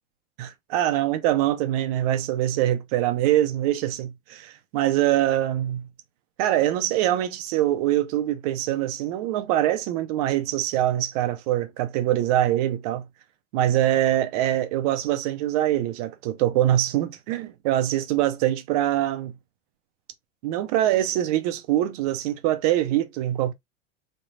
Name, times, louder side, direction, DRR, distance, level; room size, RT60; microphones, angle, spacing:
voice 1, 0.4-5.9 6.4-13.0 13.5-19.3 20.4-23.5, right 13 dB, 30° right, 0.4 m, -24 dB
3.8 x 3.2 x 2.4 m
supercardioid pair, 145°, 38 cm